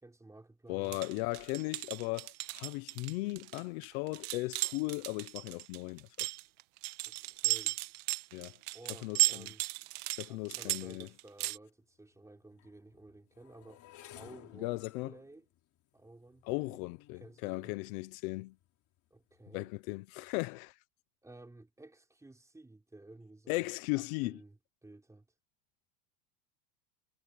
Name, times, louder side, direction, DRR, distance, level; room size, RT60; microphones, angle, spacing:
voice 1, 0.0-1.0 7.0-7.8 8.7-9.6 10.3-13.9 14.2-15.5 15.9-16.8 17.1-17.8 19.1-19.8 21.2-23.7 24.0-25.3, right 2 dB, 5° right, 4.3 m, -54 dB
voice 2, 0.7-6.3 8.3-8.5 9.0-9.5 10.2-11.1 14.5-15.1 16.4-18.5 19.5-20.7 23.5-24.4, left 23 dB, 65° left, 1.1 m, -37 dB
sound 1, 0.8-11.6, right 24 dB, 60° right, 1.4 m, -35 dB
sound 2, 11.7-11.8 12.5-18.7 19.3-19.7 20.0-20.3, left 13 dB, 40° left, 4.0 m, -57 dB
supercardioid pair, 145°, 45 cm